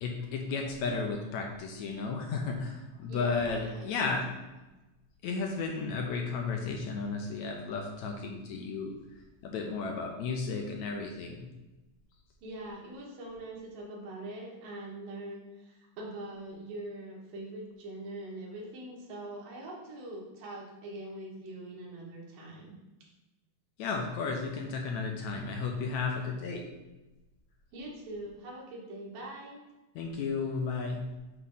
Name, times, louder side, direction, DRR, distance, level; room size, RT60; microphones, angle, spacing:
voice 1, 0.0-4.2 5.2-8.9 9.4-11.5 23.8-26.6 30.0-31.0, left 4 dB, 75° left, 1 dB, 1.8 m, -33 dB
voice 2, 3.1-4.2 12.4-22.7 27.7-29.6, right 1 dB, 90° right, -3 dB, 3.2 m, -43 dB
8.2 x 3.2 x 5.5 m, 1.1 s
omnidirectional pair, 3.7 m